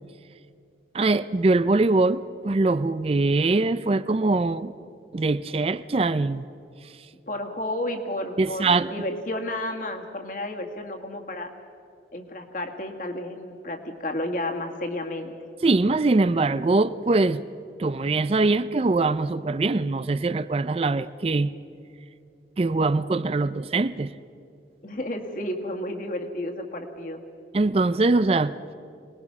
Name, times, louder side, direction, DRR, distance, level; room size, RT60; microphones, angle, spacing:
voice 1, 0.9-4.7 5.1-6.4 8.4-8.9 15.6-17.4 17.8-21.5 22.6-24.1 27.5-28.5, right 3 dB, 35° right, 0.4 m, -22 dB
voice 2, 7.3-11.5 12.1-15.3 24.8-27.2, left 1 dB, 50° left, 2.1 m, -32 dB
24.5 x 20.0 x 6.0 m
head